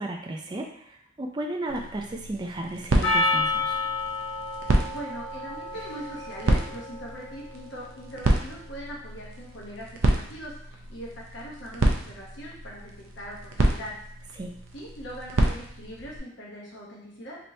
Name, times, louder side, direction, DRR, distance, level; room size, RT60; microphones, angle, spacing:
voice 1, 0.0-3.8 14.4-14.6, right 1 dB, 20° right, 2 dB, 0.4 m, -34 dB
sound 1, 1.7-16.2, right 1 dB, 90° right, 0.5 m, -29 dB
Percussion, 3.0-7.6, left 3 dB, 90° left, 1.2 m, -30 dB
voice 2, 4.8-14.0 14.7-17.4, equal, 60° left, -4 dB, 0.8 m, -41 dB
3.3 x 2.9 x 2.6 m, 0.70 s
head